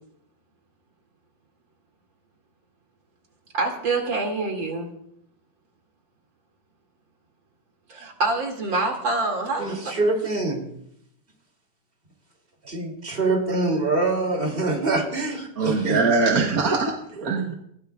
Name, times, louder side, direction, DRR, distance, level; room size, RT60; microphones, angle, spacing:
voice 1, 3.5-4.9 7.9-9.8, right 3 dB, 85° right, 1 dB, 3.1 m, -26 dB
voice 2, 9.6-10.6 12.6-16.0, right 2 dB, 30° right, 1 dB, 3.0 m, -25 dB
voice 3, 15.6-17.5, right 4 dB, 55° right, 2 dB, 1.5 m, -22 dB
21.0 x 16.5 x 2.4 m, 0.72 s
omnidirectional pair, 2.0 m